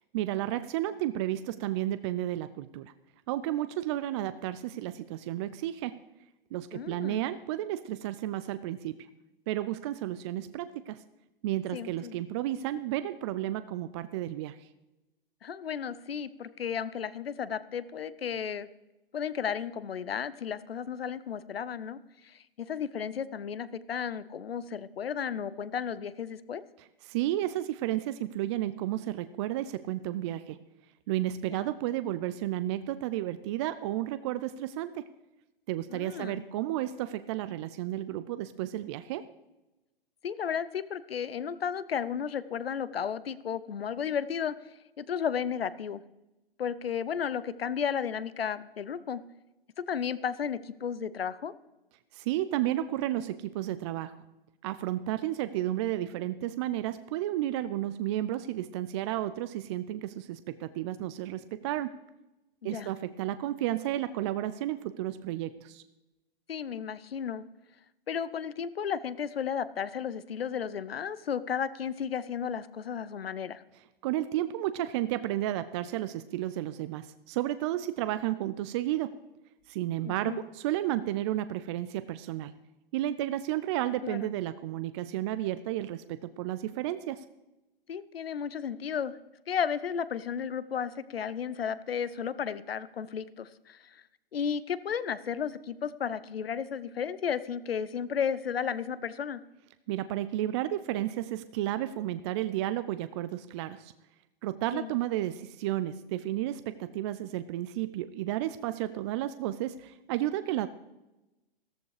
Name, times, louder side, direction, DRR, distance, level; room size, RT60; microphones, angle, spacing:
voice 1, 0.1-2.9 3.3-6.0 6.5-9.1 9.5-11.0 11.4-14.7 27.1-30.6 31.1-35.0 35.7-39.3 52.1-54.2 54.6-62.0 62.6-65.8 74.0-79.2 79.7-82.5 82.9-87.2 99.9-103.9 104.4-110.7, right 13 dB, 30° right, 13 dB, 0.4 m, -32 dB
voice 2, 6.7-7.3 11.7-12.2 15.4-18.7 19.1-26.6 31.5-31.6 35.9-36.4 40.2-46.0 46.6-49.2 49.9-51.5 62.6-62.9 66.5-67.4 68.1-73.6 80.0-80.4 84.0-84.2 87.9-89.2 89.5-94.0 94.3-99.4 104.7-104.9, left 7 dB, 80° left, 16 dB, 0.7 m, -33 dB
14.0 x 14.0 x 3.3 m, 1.0 s
hypercardioid pair, 120°, 29 cm